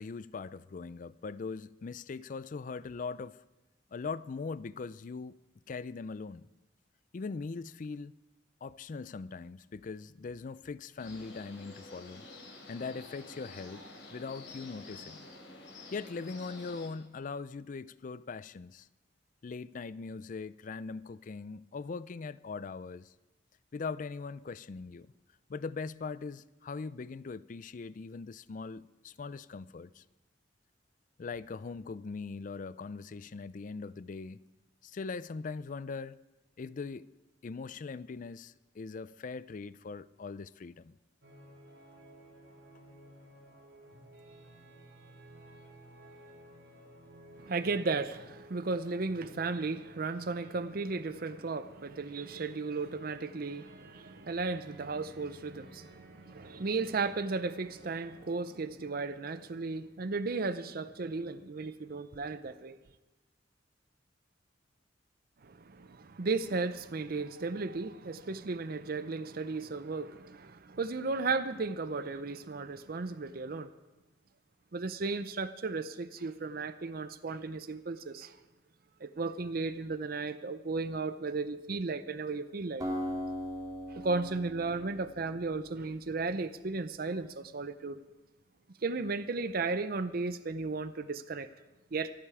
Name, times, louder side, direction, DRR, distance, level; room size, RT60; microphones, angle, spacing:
voice 1, 0.0-3.4 3.9-5.4 5.7-6.5 7.1-8.2 8.6-12.3 12.7-13.9 14.1-15.3 15.9-18.9 19.4-23.1 23.7-25.1 25.5-30.0 31.2-34.4 34.8-36.2 36.6-37.1 37.4-40.9, left 4 dB, 45° left, 0.4 m, -41 dB
sound 1, 11.0-16.9, left 2 dB, 75° left, 3.2 m, -49 dB
sound 2, 41.2-58.4, right 1 dB, 80° right, 3.9 m, -56 dB
voice 2, 47.4-62.8 65.4-73.7 74.7-78.4 79.0-82.9 83.9-88.0 88.8-91.5 91.9-92.1, right 3 dB, 55° right, 0.6 m, -35 dB
Acoustic guitar, 82.8-86.0, equal, 20° right, 2.5 m, -39 dB
25.5 x 8.8 x 4.9 m
head